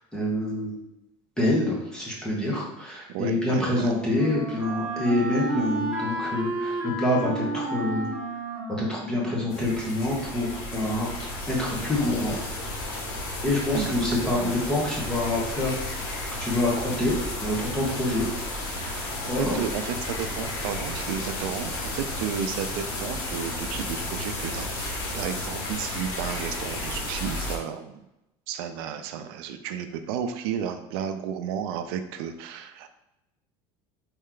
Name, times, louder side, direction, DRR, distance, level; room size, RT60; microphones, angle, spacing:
voice 1, 0.1-0.7 1.4-8.1 8.8-11.1 11.5-12.4 13.4-15.7 16.1-18.2 18.9-19.6, left 1 dB, 5° left, -4 dB, 1.1 m, -26 dB
voice 2, 3.1-3.9 13.7-14.5 18.9-28.0 28.5-32.9, right 8 dB, 85° right, 9 dB, 0.5 m, -33 dB
Wind instrument woodwind instrument, 3.2-10.1, right 1 dB, 10° right, 1.3 m, -33 dB
sound 1, 9.5-27.6, left 2 dB, 90° left, 1.5 m, -33 dB
4.4 x 3.2 x 3.7 m, 0.90 s
cardioid pair, 175°, 12 cm